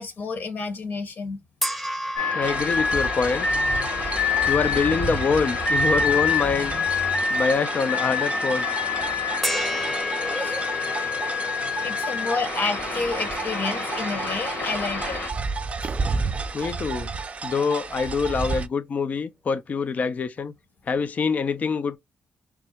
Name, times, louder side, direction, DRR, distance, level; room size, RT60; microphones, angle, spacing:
voice 1, 0.0-1.4 10.3-11.2 11.6-15.4, left 4 dB, 65° left, 1.1 m, -30 dB
sound 1, 1.6-5.1 5.7-5.8 9.4-15.8, equal, 5° left, 0.7 m, -34 dB
sound 2, 2.2-15.3, left 5 dB, 90° left, 1.8 m, -27 dB
voice 2, 2.3-3.5 4.5-6.8 7.3-8.7 10.7-10.8 12.1-12.2 16.5-17.1 17.4-20.5 20.9-22.0, left 5 dB, 50° left, 0.4 m, -25 dB
sound 3, 2.4-18.7, right 4 dB, 40° right, 0.4 m, -32 dB
3.4 x 2.1 x 4.2 m
cardioid pair, 70°, 3 cm